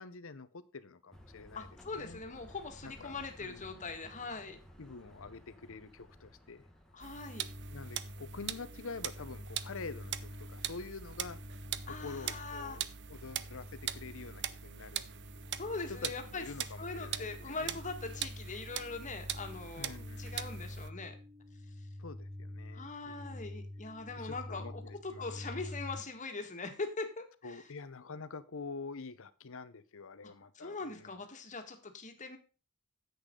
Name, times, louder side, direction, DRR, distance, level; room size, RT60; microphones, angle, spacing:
voice 1, 0.0-1.7 1.9-2.2 2.8-3.9 4.8-6.7 7.7-11.4 11.8-15.1 16.0-17.8 19.8-20.4 22.0-23.4 24.1-25.6 27.4-31.2, left 4 dB, 60° left, 15 dB, 0.8 m, -47 dB
sound 1, 1.1-8.3, equal, ahead, 1.6 m, -57 dB
voice 2, 1.5-4.6 6.9-7.4 11.9-12.8 15.5-16.4 16.8-21.2 22.7-27.6 30.2-32.4, left 3 dB, 35° left, 5 dB, 1.8 m, -42 dB
sound 2, 7.0-20.9, right 10 dB, 50° right, 0.6 m, -42 dB
sound 3, 7.1-26.0, left 1 dB, 25° right, 3.4 m, -48 dB
10.0 x 8.0 x 3.8 m, 0.33 s
head